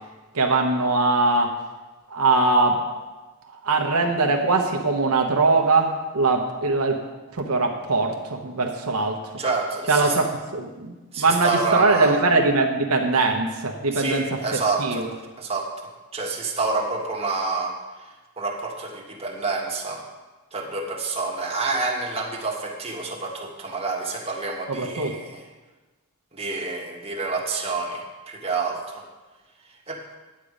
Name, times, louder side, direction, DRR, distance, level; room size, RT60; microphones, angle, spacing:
voice 1, 0.3-1.6 2.1-2.9 3.5-7.0 7.3-9.4 9.9-10.3 10.5-14.4 14.8-15.1 24.7-25.2, right 3 dB, 75° right, 3 dB, 1.0 m, -21 dB
voice 2, 9.4-10.2 11.1-12.2 13.9-15.0 15.4-20.0 20.5-25.4 26.3-29.0 29.9-30.0, right 3 dB, 25° right, -1 dB, 1.6 m, -28 dB
10.5 x 8.4 x 5.1 m, 1.2 s
head